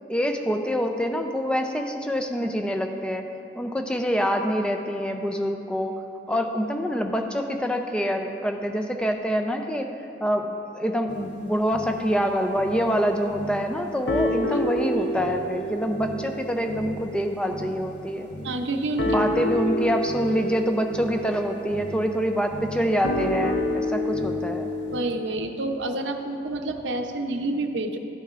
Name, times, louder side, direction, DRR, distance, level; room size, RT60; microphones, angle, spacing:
voice 1, 0.1-3.3 3.6-6.0 6.3-9.9 10.2-18.3 19.0-24.7, equal, 5° left, 4 dB, 0.4 m, -26 dB
sound 1, 11.1-12.2 12.6-12.9 13.3-13.8 14.1-25.0, left 1 dB, 75° left, 0.7 m, -30 dB
voice 2, 18.4-19.2 24.9-28.0, right 2 dB, 85° right, 5 dB, 0.6 m, -28 dB
12.5 x 8.7 x 2.4 m, 2.7 s
head